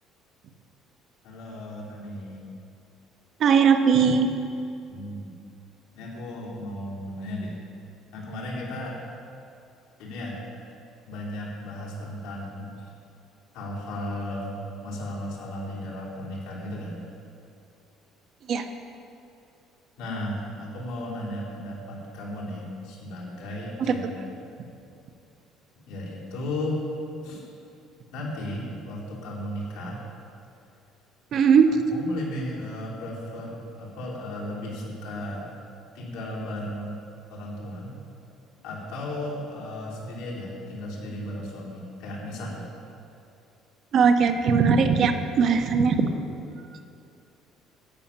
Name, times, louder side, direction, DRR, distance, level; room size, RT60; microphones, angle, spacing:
voice 1, 1.2-2.5 4.9-5.3 5.9-7.5 8.1-9.0 10.0-10.4 11.0-12.9 13.5-17.0 20.0-24.2 25.9-26.8 27.2-27.4 28.1-30.0 31.7-35.5 35.9-37.0 37.3-37.9 38.6-42.7, left 1 dB, 85° left, -5 dB, 3.3 m, -35 dB
voice 2, 3.4-4.3 18.5-18.7 23.8-23.9 31.3-31.8 43.9-46.1, right 6 dB, 50° right, 7 dB, 0.9 m, -19 dB
13.0 x 5.6 x 8.9 m, 2.6 s
cardioid pair, 120°, 0 cm